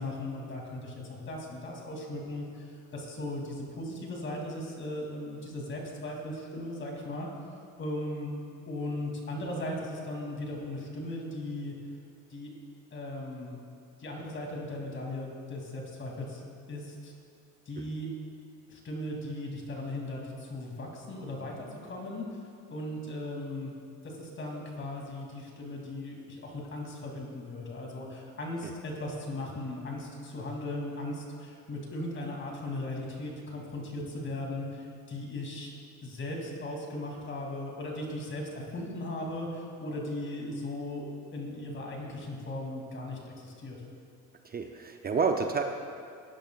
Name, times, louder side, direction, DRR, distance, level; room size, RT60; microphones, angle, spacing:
voice 1, 0.0-7.3 7.8-8.3 8.7-11.7 12.3-12.5 12.9-13.5 14.0-16.4 16.7-17.1 17.7-18.1 18.7-22.3 22.7-23.7 24.0-35.7 36.0-38.4 38.7-43.8, left 1 dB, 35° left, -1 dB, 2.8 m, -37 dB
voice 2, 44.4-45.6, right 5 dB, 30° right, 4 dB, 0.6 m, -29 dB
18.5 x 10.0 x 2.4 m, 2.4 s
cardioid pair, 100°, 33 cm